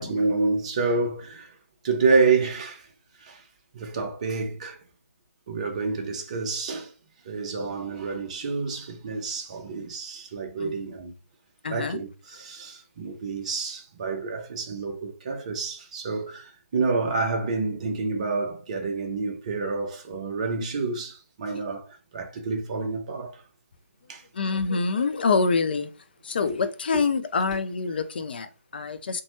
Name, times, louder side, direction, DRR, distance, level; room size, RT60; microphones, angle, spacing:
voice 1, 0.0-1.5 1.8-2.9 3.2-3.4 3.7-4.8 5.5-6.9 7.3-11.1 11.7-23.4 24.1-24.2, right 4 dB, 25° right, 0.6 m, -28 dB
voice 2, 10.6-10.9 11.6-12.0 24.3-25.9 26.2-29.2, left 4 dB, 40° left, 0.4 m, -26 dB
3.0 x 2.2 x 2.8 m
figure-of-eight pair, 150°, 8 cm